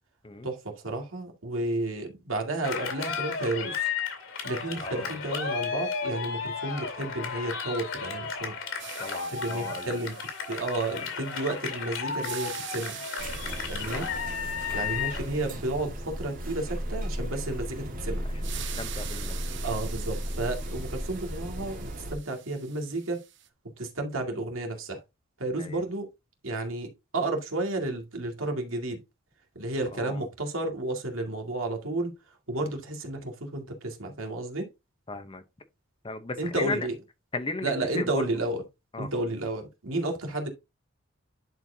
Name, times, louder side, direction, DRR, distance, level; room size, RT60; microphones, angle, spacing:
voice 1, 0.4-3.9 4.4-8.5 9.3-10.1 10.5-13.0 13.7-14.1 14.7-18.2 19.6-23.2 23.8-25.0 25.4-26.1 26.4-29.0 29.6-32.1 32.5-34.7 36.4-37.0 37.6-38.6 39.0-40.5, right 2 dB, 80° right, 2.1 m, -32 dB
Cheering, 2.6-15.3, left 6 dB, 75° left, 2.4 m, -33 dB
voice 2, 4.8-5.2 9.0-10.0 13.9-14.1 14.7-14.8 18.4-19.6 25.6-25.8 29.9-30.2 32.5-32.7 35.1-35.4 36.0-36.9 37.3-38.2 38.9-39.1, left 3 dB, 25° left, 0.7 m, -36 dB
sound 1, 8.8-11.7 12.1-16.9 18.4-23.5, right 11 dB, 60° right, 0.9 m, -45 dB
sound 2, 13.2-22.1, equal, 40° right, 1.7 m, -35 dB
10.5 x 4.5 x 2.7 m
head